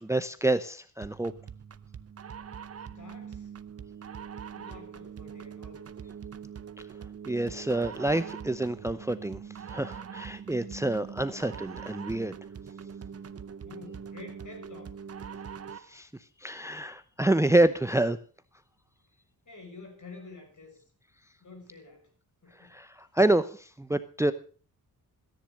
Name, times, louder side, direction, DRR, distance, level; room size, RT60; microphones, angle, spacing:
voice 1, 0.0-1.3 7.3-9.4 9.7-12.3 15.9-16.1 16.4-18.2 22.6-24.3, right 1 dB, 10° right, 14 dB, 0.7 m, -27 dB
sound 1, 1.0-16.0, right 7 dB, 40° right, 0.8 m, -43 dB
voice 2, 2.9-3.5 4.5-6.2 13.6-15.0 19.4-20.9 21.4-22.1 22.4-22.8, left 3 dB, 55° left, 4 dB, 6.7 m, -49 dB
14.5 x 10.5 x 6.3 m, 0.40 s
cardioid pair, 90°, 37 cm